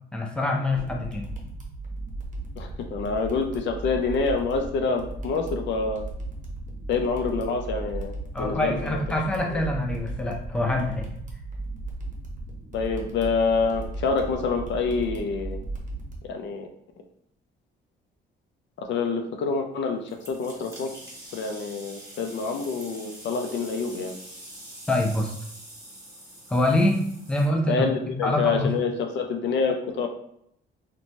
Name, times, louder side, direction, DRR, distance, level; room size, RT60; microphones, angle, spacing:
voice 1, 0.1-1.3 8.3-11.1 24.9-25.3 26.5-27.0 27.3-27.9 28.2-28.7, left 1 dB, 5° left, 0 dB, 0.5 m, -25 dB
sound 1, 0.8-16.2, right 2 dB, 40° right, 0.7 m, -36 dB
voice 2, 2.6-6.0 6.9-8.1 8.4-9.0 9.5-9.6 12.7-15.6 16.2-16.7 18.8-20.9 21.3-24.2 27.7-30.1, left 4 dB, 65° left, 4 dB, 0.4 m, -27 dB
sound 2, 20.1-27.5, right 1 dB, 15° right, 1.3 m, -45 dB
2.9 x 2.2 x 2.6 m, 0.72 s
cardioid pair, 90°, 20 cm